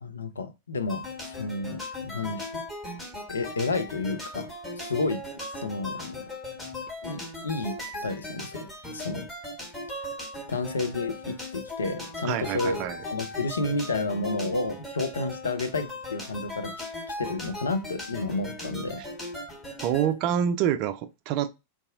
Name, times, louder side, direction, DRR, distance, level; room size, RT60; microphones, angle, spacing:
voice 1, 0.0-1.0 1.4-2.6 3.3-4.5 4.8-5.3 5.6-6.2 7.0-7.8 8.0-9.3 9.9-10.1 10.5-12.8 13.1-16.7 17.2-19.0, left 3 dB, 70° left, 0.4 m, -31 dB
sound 1, 0.9-20.1, left 1 dB, 15° left, 1.3 m, -38 dB
voice 2, 12.2-13.0 19.8-21.5, right 9 dB, 40° right, 0.4 m, -27 dB
4.0 x 2.3 x 2.4 m
figure-of-eight pair, 90°, 0 cm